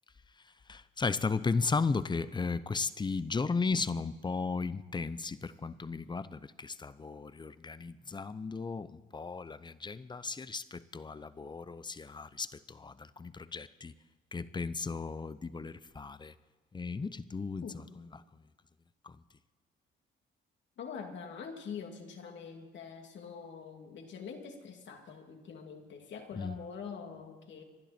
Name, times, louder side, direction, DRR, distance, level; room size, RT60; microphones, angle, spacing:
voice 1, 0.7-13.9 14.3-16.3 16.7-18.1 19.0-19.2 26.4-26.6, left 4 dB, 20° left, 0.7 m, -35 dB
voice 2, 17.6-17.9 20.8-27.6, left 6 dB, 65° left, 2.6 m, -44 dB
26.5 x 11.5 x 4.4 m
cardioid pair, 90°, 20 cm